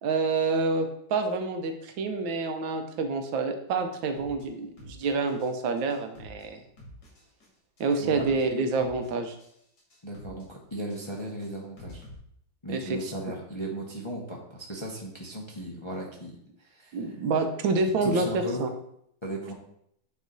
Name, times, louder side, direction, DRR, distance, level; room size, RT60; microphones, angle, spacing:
voice 1, 0.0-6.6 7.8-9.4 12.7-13.0 16.9-18.7, right 3 dB, 85° right, 6 dB, 1.5 m, -28 dB
sound 1, 4.1-4.4 4.8-5.5 5.8-6.4 6.8-7.5 7.8-8.4 8.8-9.5 9.8-10.4 10.8-12.1, equal, 65° left, 2.8 m, -48 dB
voice 2, 10.0-12.0 12.6-17.1 18.0-18.6 19.2-19.5, right 1 dB, 25° left, -3 dB, 0.6 m, -36 dB
9.0 x 3.1 x 3.9 m, 0.73 s
omnidirectional pair, 2.1 m